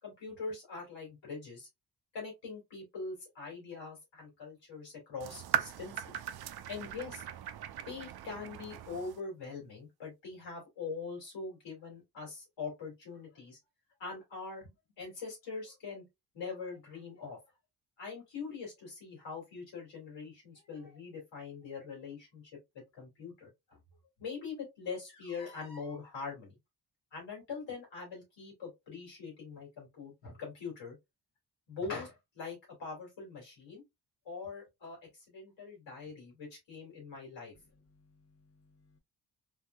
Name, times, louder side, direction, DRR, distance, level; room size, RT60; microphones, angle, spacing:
voice 1, 0.0-1.7 2.1-6.2 6.7-7.2 7.9-13.6 14.0-16.0 16.3-17.4 18.0-22.4 22.7-23.8 24.2-26.6 27.1-31.0 31.7-33.8 34.2-37.5, left 4 dB, 90° left, 2.3 m, -43 dB
sound 1, 5.2-9.2, right 10 dB, 60° right, 0.5 m, -38 dB
voice 2, 37.7-39.0, left 3 dB, 35° left, 0.8 m, -66 dB
3.5 x 2.7 x 2.3 m
cardioid pair, 55°, 44 cm